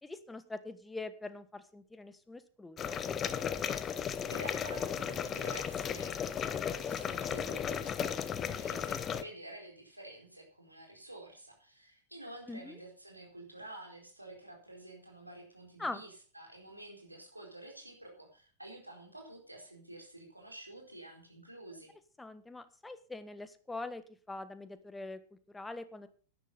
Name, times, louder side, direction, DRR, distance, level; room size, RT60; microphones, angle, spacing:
voice 1, 0.0-3.0 12.5-12.8 15.8-16.0 22.2-24.0 24.3-26.1, left 2 dB, 10° left, 12 dB, 1.3 m, -43 dB
sound 1, 2.8-9.2, left 8 dB, 25° left, 0.9 m, -35 dB
voice 2, 4.3-21.9, right 1 dB, 85° right, 0 dB, 4.3 m, -50 dB
11.5 x 10.5 x 5.6 m, 0.40 s
figure-of-eight pair, 90°, 0 cm